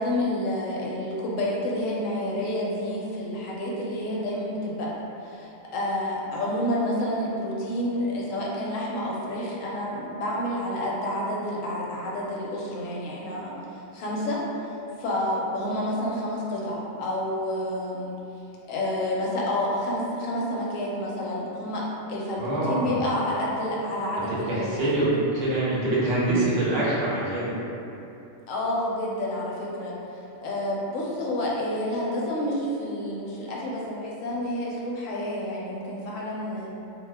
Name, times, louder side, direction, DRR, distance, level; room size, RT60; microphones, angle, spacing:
voice 1, 0.0-4.9 5.2-13.5 13.9-14.6 15.0-18.1 18.7-21.8 22.1-25.0 28.5-29.9 30.4-36.7, left 1 dB, 80° left, -4 dB, 0.9 m, -29 dB
voice 2, 22.4-23.0 24.2-27.5, right 2 dB, 60° right, -8 dB, 0.8 m, -25 dB
2.3 x 2.1 x 3.3 m, 2.8 s
omnidirectional pair, 1.4 m